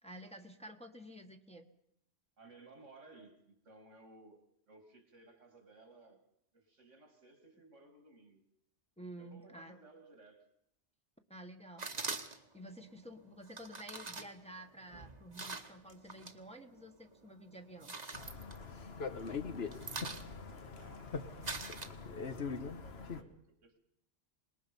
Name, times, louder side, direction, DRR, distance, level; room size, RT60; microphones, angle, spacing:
voice 1, 0.0-1.7 9.0-9.8 11.3-11.9 12.5-18.0, right 1 dB, 5° left, 3 dB, 1.4 m, -51 dB
voice 2, 2.4-6.2 6.5-8.5 9.2-10.5 19.1-21.2 21.6-23.8, right 3 dB, 90° right, 6 dB, 3.0 m, -60 dB
sound 1, 11.8-12.6 13.5-16.4 16.7-17.3 17.6-19.1 19.4-22.4, right 3 dB, 35° right, 1.4 m, -44 dB
sound 2, 18.1-23.2, left 5 dB, 60° left, 1.5 m, -42 dB
25.5 x 20.5 x 5.5 m, 0.78 s
omnidirectional pair, 1.2 m